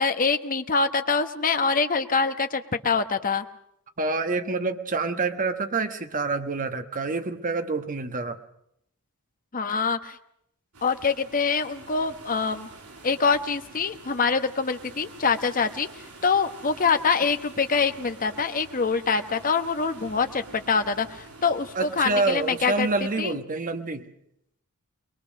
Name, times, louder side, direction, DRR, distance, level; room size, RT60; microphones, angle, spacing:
voice 1, 0.0-3.4 9.5-10.2 10.8-12.7 13.0-15.9 16.2-22.9 23.2-23.4, left 5 dB, 40° left, 8 dB, 1.1 m, -25 dB
voice 2, 4.0-8.4 21.7-24.1, right 3 dB, 40° right, 8 dB, 1.2 m, -27 dB
sound 1, 10.7-23.2, right 2 dB, 90° right, 4.8 m, -47 dB
22.5 x 22.0 x 6.4 m, 0.76 s
head